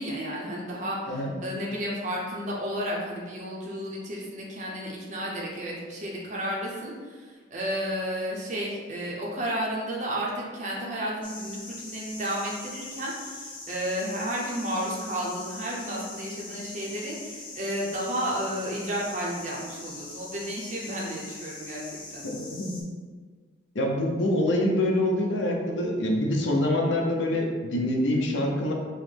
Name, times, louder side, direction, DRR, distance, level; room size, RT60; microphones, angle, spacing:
voice 1, 0.0-22.3, equal, 40° right, -4 dB, 0.6 m, -32 dB
sound 1, 11.2-22.8, left 3 dB, 25° left, 0.5 m, -42 dB
voice 2, 22.2-22.8 23.7-28.7, left 1 dB, 75° left, 1 dB, 0.6 m, -25 dB
5.3 x 2.1 x 3.2 m, 1.5 s
head